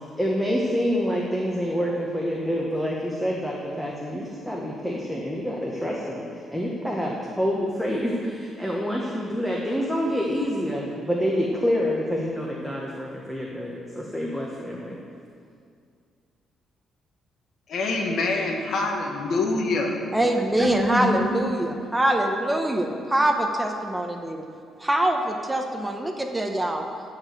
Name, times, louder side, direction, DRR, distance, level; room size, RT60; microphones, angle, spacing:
voice 1, 0.2-6.2 6.5-15.0, equal, 5° left, -3 dB, 1.5 m, -27 dB
voice 2, 17.7-20.0 20.6-21.4, left 3 dB, 65° left, 1 dB, 1.6 m, -26 dB
voice 3, 20.1-24.4 24.8-26.9, right 1 dB, 10° right, 3 dB, 1.1 m, -24 dB
13.5 x 4.9 x 7.9 m, 2.3 s
cardioid pair, 90°, 0 cm